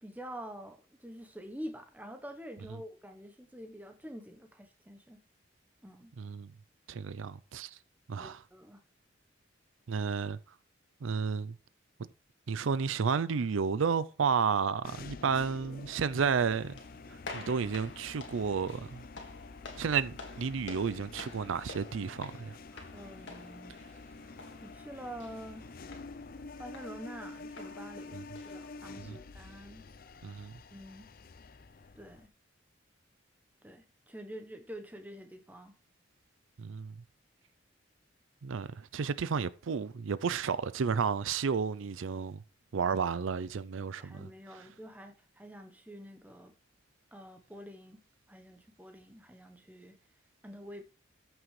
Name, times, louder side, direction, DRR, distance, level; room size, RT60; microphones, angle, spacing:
voice 1, 0.0-5.2 5.8-6.1 8.2-8.8 22.9-23.8 24.6-25.7 26.6-29.8 30.7-31.1 32.0-32.3 33.6-35.7 44.0-46.5 47.1-48.0 48.3-50.0 50.4-50.8, equal, 10° right, 1.0 m, -47 dB
voice 2, 6.2-6.5 6.9-7.8 8.1-8.4 9.9-10.4 11.0-11.6 12.0-12.1 12.5-16.8 17.3-19.0 19.8-22.6 28.1-28.2 29.0-29.2 30.2-30.5 36.6-37.0 38.4-42.4 42.7-44.3, right 6 dB, 85° right, 0.5 m, -32 dB
sound 1, 14.8-32.3, left 3 dB, 45° left, 0.5 m, -48 dB
sound 2, 16.0-29.1, left 3 dB, 70° left, 1.9 m, -50 dB
14.0 x 6.2 x 3.2 m
head